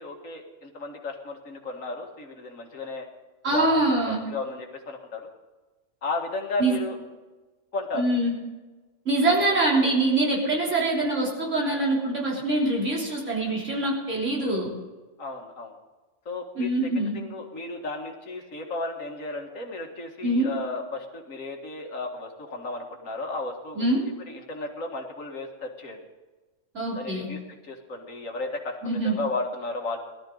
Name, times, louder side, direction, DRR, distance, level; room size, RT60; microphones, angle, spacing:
voice 1, 0.0-3.1 3.5-5.3 6.0-7.0 7.7-8.1 9.4-9.5 15.2-15.7 16.3-16.7 17.0-23.9 24.3-26.0 27.0-30.0, left 3 dB, 90° left, 1 dB, 2.3 m, -34 dB
voice 2, 3.4-4.2 6.6-6.8 7.9-8.3 9.1-14.7 16.6-17.2 20.2-20.5 23.8-24.0 26.7-27.3 28.8-29.2, right 2 dB, 70° right, -4 dB, 4.0 m, -24 dB
19.0 x 13.0 x 4.0 m, 1.2 s
omnidirectional pair, 1.3 m